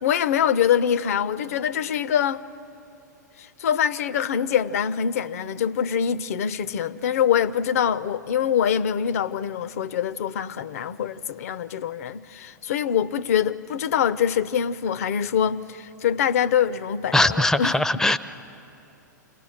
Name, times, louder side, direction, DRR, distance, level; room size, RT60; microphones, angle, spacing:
voice 1, 0.0-2.4 3.4-17.8, left 8 dB, 50° left, 0.5 m, -24 dB
voice 2, 17.1-18.2, left 1 dB, 5° left, 0.5 m, -20 dB
28.0 x 18.5 x 6.4 m
figure-of-eight pair, 105°, 10 cm